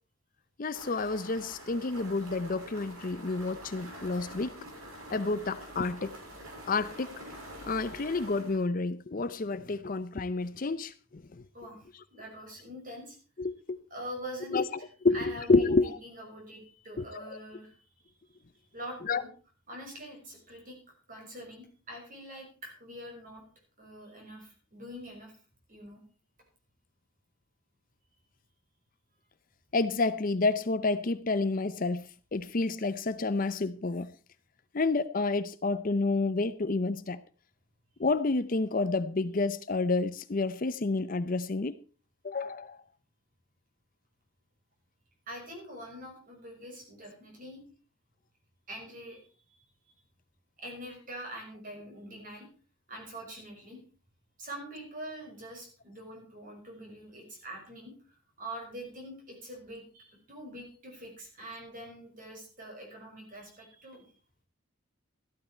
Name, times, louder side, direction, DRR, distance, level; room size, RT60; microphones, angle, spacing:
voice 1, 0.6-4.5 5.1-6.1 6.7-7.1 7.6-11.4 13.4-13.8 14.5-14.6 15.0-16.0 17.1-17.4 19.0-19.2 29.7-32.0 32.3-34.1 34.7-37.2 38.0-41.7 42.2-42.8, left 3 dB, 40° left, 0.5 m, -29 dB
sound 1, 0.7-8.6, right 1 dB, 85° right, 5.4 m, -46 dB
voice 2, 12.1-13.2 13.9-14.7 15.1-17.7 18.7-19.3 19.7-20.8 21.1-23.4 23.8-25.3 25.7-26.0 45.3-47.6 48.7-49.2 50.6-52.5 52.9-53.8 54.4-57.9 58.4-64.1, equal, 40° right, 6.2 m, -44 dB
14.0 x 12.0 x 4.5 m
head